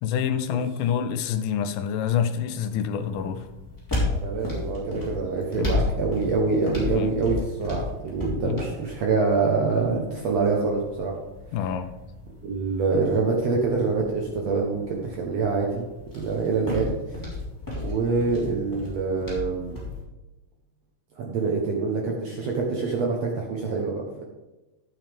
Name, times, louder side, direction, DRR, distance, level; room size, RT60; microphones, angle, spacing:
voice 1, 0.0-3.5 5.6-5.8 6.9-7.1 8.4-8.6 11.5-11.9, left 8 dB, 75° left, 9 dB, 2.2 m, -27 dB
sound 1, 3.0-20.0, left 2 dB, 5° left, 3.3 m, -34 dB
voice 2, 4.2-11.1 12.4-15.8 16.1-17.2 17.7-19.8 21.2-24.2, right 4 dB, 65° right, -1 dB, 1.7 m, -25 dB
11.5 x 8.8 x 3.5 m, 1.1 s
omnidirectional pair, 4.2 m